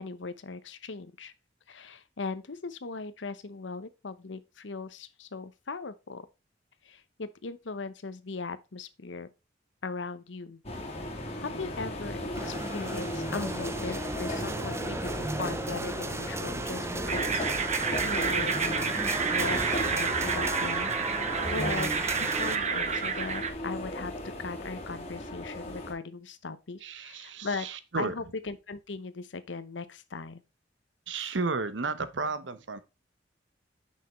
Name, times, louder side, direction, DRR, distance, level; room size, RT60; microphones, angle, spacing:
voice 1, 0.0-1.3 1.7-6.3 6.8-9.3 9.8-10.6 11.4-19.0 19.3-27.7 27.9-30.4 31.1-31.4, left 4 dB, 90° left, 0.8 m, -39 dB
sound 1, 10.6-25.9, left 1 dB, 35° left, 2.3 m, -36 dB
sound 2, 12.3-22.6, right 3 dB, 15° right, 0.4 m, -35 dB
sound 3, 17.1-23.5, right 6 dB, 40° right, 0.9 m, -30 dB
voice 2, 26.8-28.2 31.1-32.8, right 4 dB, 85° right, 0.9 m, -33 dB
6.3 x 5.8 x 4.2 m
head